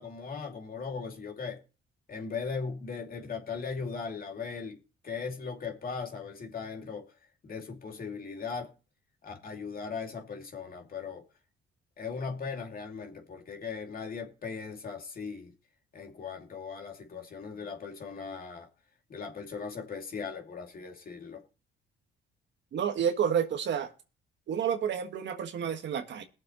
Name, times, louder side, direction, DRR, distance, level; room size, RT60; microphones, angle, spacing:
voice 1, 0.0-1.6 2.1-4.8 5.0-7.1 7.4-8.7 9.2-11.2 12.0-15.5 15.9-18.7 19.1-21.4, left 5 dB, 45° left, 2.6 m, -38 dB
voice 2, 22.7-23.9 24.5-26.2, right 8 dB, 65° right, 1.5 m, -30 dB
20.5 x 7.2 x 3.0 m
cardioid pair, 90°, 20 cm